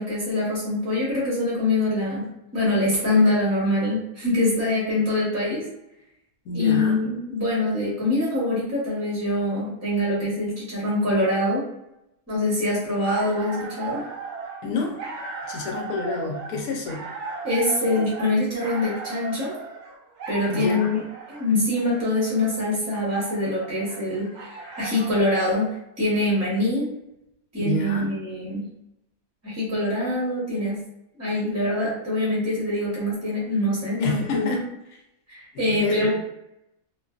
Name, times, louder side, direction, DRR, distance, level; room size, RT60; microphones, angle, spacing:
voice 1, 0.0-5.7 6.5-11.7 12.3-14.0 17.4-19.5 20.3-21.0 21.3-26.9 27.5-28.7 29.4-30.9 31.2-34.6 35.3-36.1, left 1 dB, 15° right, -7 dB, 0.6 m, -24 dB
voice 2, 6.5-7.0 14.6-15.1 15.5-17.1 20.5-20.9 27.6-28.2 34.0-34.6 35.5-36.1, left 3 dB, 75° left, 0 dB, 1.0 m, -28 dB
sound 1, 12.9-25.3, right 4 dB, 90° right, 1.1 m, -37 dB
2.5 x 2.3 x 2.3 m, 0.85 s
omnidirectional pair, 1.6 m